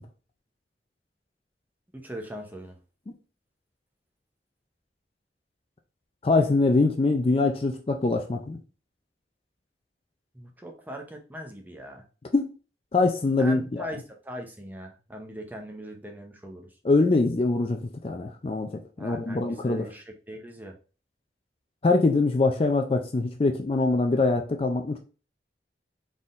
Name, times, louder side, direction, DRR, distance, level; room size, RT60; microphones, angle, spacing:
voice 1, 1.9-2.8 10.3-12.0 13.4-16.8 19.0-20.8, equal, 10° right, 2 dB, 0.7 m, -40 dB
voice 2, 6.2-8.6 12.3-12.5 12.9-13.8 16.8-18.7 19.0-19.9 21.8-25.0, left 3 dB, 35° left, 5 dB, 0.4 m, -23 dB
4.2 x 3.6 x 2.5 m, 0.35 s
head